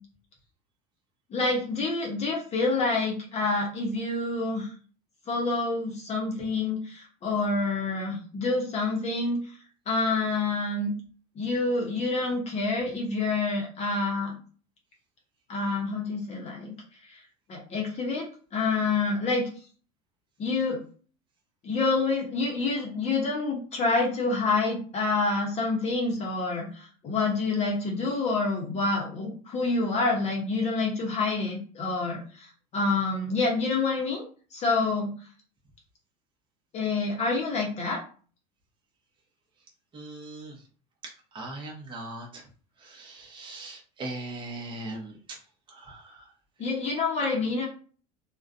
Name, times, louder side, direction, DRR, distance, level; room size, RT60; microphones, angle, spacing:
voice 1, 1.3-4.7 5.3-9.4 9.9-10.9 11.4-14.3 15.5-16.7 17.1-17.2 17.5-19.5 20.4-20.8 21.6-34.2 34.5-35.1 36.7-38.0 46.6-47.7, left 3 dB, 35° left, -1 dB, 0.7 m, -27 dB
voice 2, 39.9-40.6 41.3-42.4 42.8-45.4 45.7-46.3, right 2 dB, 25° right, -1 dB, 0.8 m, -40 dB
2.4 x 2.2 x 2.5 m, 0.40 s
supercardioid pair, 125°, 19 cm